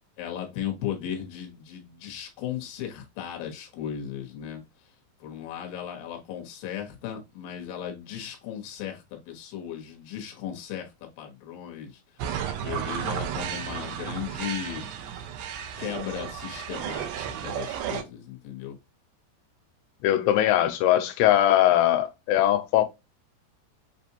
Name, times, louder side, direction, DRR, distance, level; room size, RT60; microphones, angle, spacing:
voice 1, 0.2-4.6 5.2-10.9 11.2-14.9 15.8-18.8, left 9 dB, 65° left, 2.7 m, -36 dB
sound 1, 12.2-18.0, right 9 dB, 85° right, 2.1 m, -33 dB
voice 2, 20.0-22.9, left 12 dB, 90° left, 2.8 m, -21 dB
7.2 x 2.5 x 2.8 m
omnidirectional pair, 5.1 m